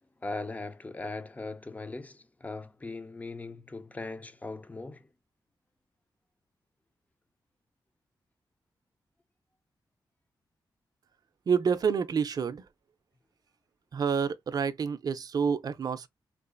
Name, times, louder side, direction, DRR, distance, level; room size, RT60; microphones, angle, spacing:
voice 1, 0.2-5.1, left 3 dB, 20° left, 0.4 m, -39 dB
voice 2, 11.5-12.6 13.9-16.1, right 6 dB, 50° right, 0.5 m, -28 dB
3.9 x 2.4 x 2.4 m
wide cardioid pair, 120°, 8 cm